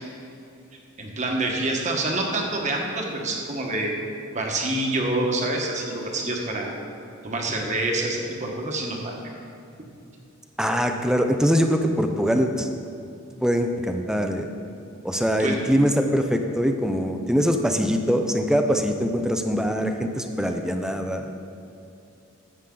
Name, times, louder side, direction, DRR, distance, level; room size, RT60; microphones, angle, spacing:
voice 1, 1.0-4.0 4.3-6.7 7.2-9.1 15.4-15.6, right 2 dB, 35° right, 0 dB, 1.4 m, -26 dB
voice 2, 10.6-12.7 13.4-14.5 15.0-21.3, equal, 5° right, 5 dB, 0.6 m, -23 dB
13.0 x 8.2 x 3.9 m, 2.7 s
head